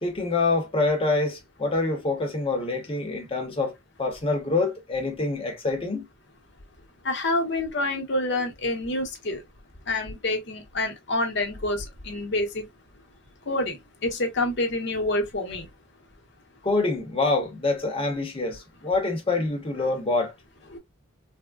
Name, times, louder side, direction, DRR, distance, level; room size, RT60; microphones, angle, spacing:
voice 1, 0.0-6.1 16.6-20.3, left 3 dB, 30° left, 0.9 m, -26 dB
voice 2, 7.0-9.4 9.9-12.6 13.5-13.8 14.0-15.7 20.7-20.8, left 2 dB, 60° left, 0.9 m, -27 dB
3.4 x 2.1 x 2.3 m
head